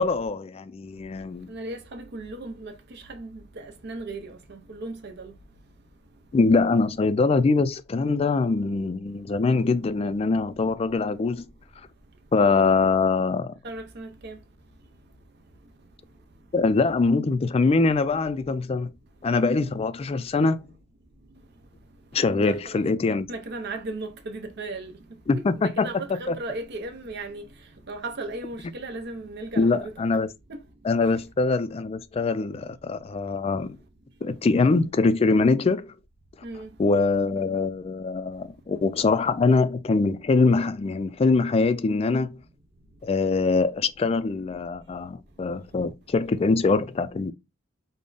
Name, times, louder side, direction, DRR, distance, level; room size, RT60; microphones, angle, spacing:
voice 1, 0.0-1.5 6.3-11.5 12.3-13.5 16.5-18.9 19.2-20.6 22.1-23.3 25.3-25.9 26.3-26.4 29.6-30.3 30.8-33.8 34.2-35.9 36.8-42.4 43.0-47.3, left 3 dB, 30° left, 0.3 m, -23 dB
voice 2, 1.5-5.3 13.6-14.4 22.4-22.8 23.3-24.9 25.3-27.5 27.9-29.9 30.5-30.6 31.0-31.1 36.4-36.7, right 2 dB, 55° right, 0.7 m, -36 dB
3.5 x 2.1 x 3.8 m
head